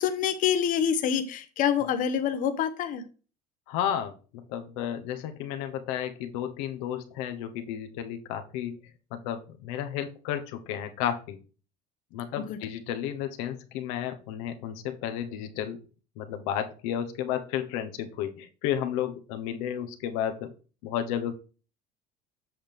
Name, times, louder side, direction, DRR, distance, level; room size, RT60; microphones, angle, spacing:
voice 1, 0.0-3.0 12.5-12.6, left 8 dB, 50° left, 8 dB, 1.0 m, -26 dB
voice 2, 3.7-4.1 4.5-8.8 9.1-11.4 12.1-15.8 16.2-20.5 20.8-21.3, left 10 dB, 85° left, 6 dB, 1.1 m, -32 dB
7.8 x 5.8 x 3.5 m, 0.35 s
cardioid pair, 130°, 17 cm